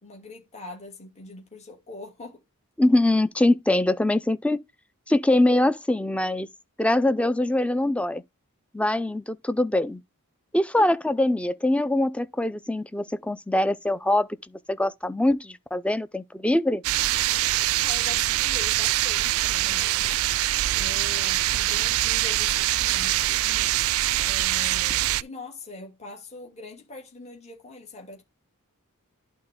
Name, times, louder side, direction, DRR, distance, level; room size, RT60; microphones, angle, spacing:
voice 1, 0.0-2.4 17.8-20.2 20.8-23.4 24.2-28.2, left 2 dB, 30° left, 2.9 m, -42 dB
voice 2, 2.8-4.6 5.1-6.5 6.8-8.2 8.7-10.0 10.5-16.8, left 1 dB, 5° left, 0.5 m, -23 dB
sound 1, 16.8-25.2, right 15 dB, 65° right, 0.4 m, -24 dB
11.0 x 4.1 x 3.8 m
head